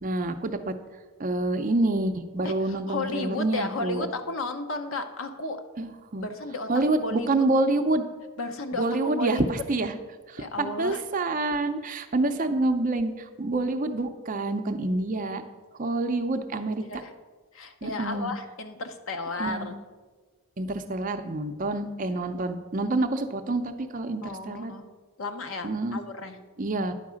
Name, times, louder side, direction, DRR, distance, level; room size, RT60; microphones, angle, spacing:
voice 1, 0.0-0.7 1.2-4.1 5.8-6.2 6.7-8.1 8.7-10.0 10.3-15.4 15.7-16.8 17.8-18.3 19.4-19.7 20.6-24.7 25.6-26.0 26.6-26.9, right 2 dB, 40° right, 7 dB, 0.5 m, -27 dB
voice 2, 2.4-5.6 6.2-6.7 7.0-7.3 8.4-9.5 10.4-11.0 16.8-17.1 17.5-19.8 24.2-24.9 25.2-26.4, left 2 dB, 65° left, 7 dB, 0.8 m, -33 dB
10.5 x 4.7 x 6.2 m, 1.4 s
head